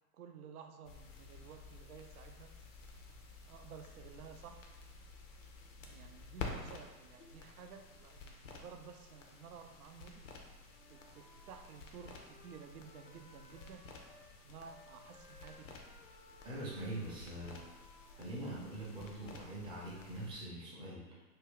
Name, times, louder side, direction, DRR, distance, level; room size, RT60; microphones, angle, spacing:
voice 1, 0.1-2.6 3.4-4.7 5.8-10.5 10.9-13.9 14.4-15.8, right 6 dB, 65° right, 6 dB, 0.5 m, -54 dB
sound 1, 0.8-20.4, left 4 dB, 55° left, 0.6 m, -52 dB
Wind instrument woodwind instrument, 10.6-14.3 14.6-18.5, left 2 dB, 75° left, 0.9 m, -62 dB
voice 2, 16.4-17.6 18.2-21.2, right 1 dB, 10° right, -6 dB, 0.6 m, -43 dB
2.7 x 2.2 x 3.6 m, 1.2 s
figure-of-eight pair, 105°, 48 cm